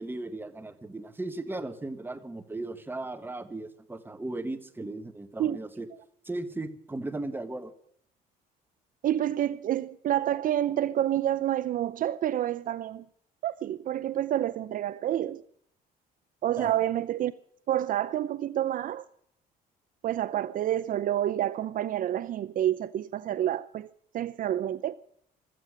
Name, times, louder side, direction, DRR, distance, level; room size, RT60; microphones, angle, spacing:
voice 1, 0.0-5.9 6.2-7.7 16.6-16.8, right 2 dB, 10° right, 1.6 m, -36 dB
voice 2, 9.0-13.0 13.4-15.4 16.4-17.3 17.7-19.0 20.0-24.9, right 12 dB, 55° right, 0.6 m, -28 dB
16.0 x 14.0 x 6.5 m
cardioid pair, 110°, 17 cm